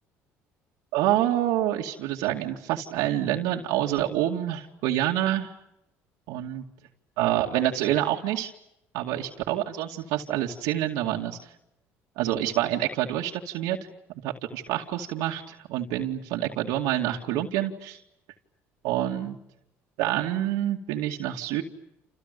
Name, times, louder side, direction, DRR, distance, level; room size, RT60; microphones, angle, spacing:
voice 1, 0.9-5.5 6.3-6.6 7.2-8.5 8.9-11.4 12.2-13.8 14.2-18.0 18.8-19.4 20.0-21.6, right 13 dB, 85° right, 0 dB, 2.4 m, -27 dB
30.0 x 29.0 x 6.9 m, 0.84 s
supercardioid pair, 90°, 6 cm